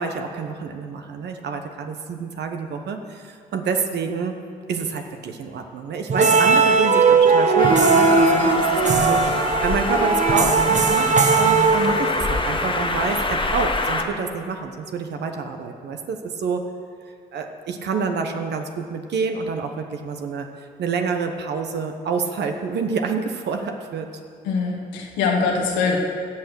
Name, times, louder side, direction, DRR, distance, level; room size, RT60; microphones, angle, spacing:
voice 1, 0.0-4.4 4.7-16.6 17.3-20.5 20.8-24.1, right 5 dB, 65° right, 5 dB, 1.1 m, -27 dB
sound 1, 6.1-12.4, right 4 dB, 40° right, 1.1 m, -18 dB
Train, 7.6-14.0, left 2 dB, 25° left, 1.6 m, -25 dB
voice 2, 24.4-26.0, left 4 dB, 80° left, 1 dB, 1.6 m, -22 dB
17.0 x 5.9 x 6.4 m, 2.2 s
hypercardioid pair, 50°, 19 cm